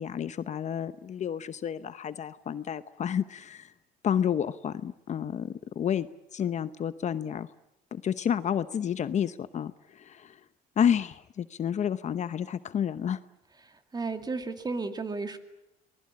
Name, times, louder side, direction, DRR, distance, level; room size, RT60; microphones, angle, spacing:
voice 1, 0.0-3.7 4.0-6.1 6.3-7.5 7.9-10.4 10.8-13.2, left 8 dB, 45° left, 13 dB, 0.9 m, -30 dB
voice 2, 13.6-15.4, right 3 dB, 25° right, 7 dB, 2.4 m, -34 dB
25.5 x 20.0 x 8.7 m, 0.86 s
cardioid pair, 110°, 17 cm